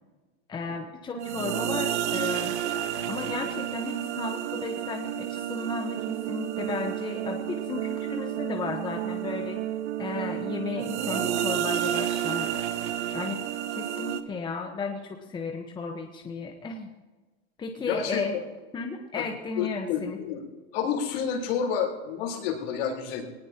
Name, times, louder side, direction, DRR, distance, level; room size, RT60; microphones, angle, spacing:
voice 1, 0.5-2.5 3.1-9.6 10.0-12.5 13.1-16.9 17.6-18.4 18.7-20.2, left 4 dB, 15° left, 2 dB, 1.1 m, -34 dB
sound 1, 1.2-14.2, right 11 dB, 85° right, 1.2 m, -31 dB
voice 2, 17.9-18.4 19.1-19.3 19.6-20.4 20.7-23.2, left 7 dB, 60° left, 0 dB, 4.1 m, -29 dB
20.5 x 19.0 x 2.9 m, 1.2 s
supercardioid pair, 145°, 33 cm